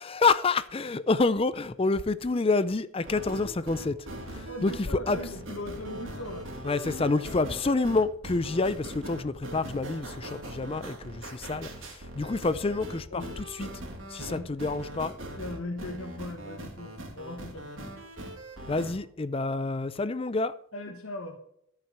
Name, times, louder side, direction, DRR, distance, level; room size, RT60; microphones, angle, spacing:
voice 1, 0.0-5.2 6.6-13.7 14.1-15.2 18.7-20.6, left 3 dB, 25° left, 0.4 m, -28 dB
sound 1, 3.0-18.9, right 1 dB, 60° right, 2.7 m, -41 dB
voice 2, 4.5-6.5 13.1-13.4 14.3-14.6 15.4-17.8 20.7-21.4, left 2 dB, 75° left, 1.3 m, -39 dB
14.0 x 5.8 x 6.6 m
head